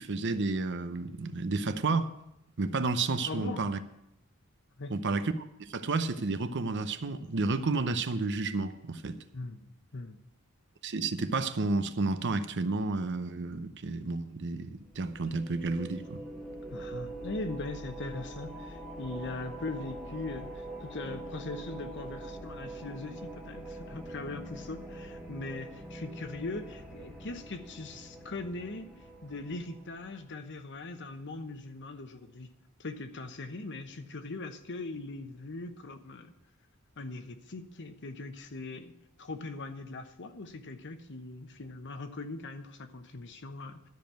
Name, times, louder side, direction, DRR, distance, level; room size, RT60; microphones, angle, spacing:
voice 1, 0.0-2.1 2.6-3.8 4.9-5.3 5.6-9.2 10.8-16.2, right 3 dB, 55° right, 0.7 m, -31 dB
voice 2, 3.2-3.7 4.8-5.0 9.3-10.2 16.7-32.5 32.8-36.3 37.0-43.9, left 2 dB, 55° left, 1.0 m, -41 dB
sound 1, 14.8-30.2, right 1 dB, 5° right, 1.5 m, -44 dB
12.5 x 5.3 x 9.0 m
head